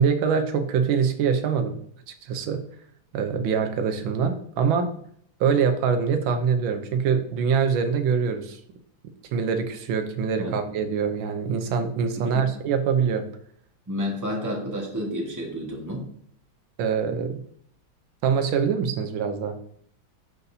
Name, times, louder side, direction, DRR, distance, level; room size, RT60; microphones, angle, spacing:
voice 1, 0.0-1.8 2.2-2.6 3.1-4.9 5.4-8.6 9.3-13.3 16.8-17.4 18.2-19.6, right 6 dB, 85° right, 7 dB, 1.6 m, -24 dB
voice 2, 12.2-12.5 13.9-16.1, equal, 10° right, -1 dB, 1.4 m, -30 dB
11.5 x 4.1 x 2.7 m, 0.63 s
omnidirectional pair, 2.1 m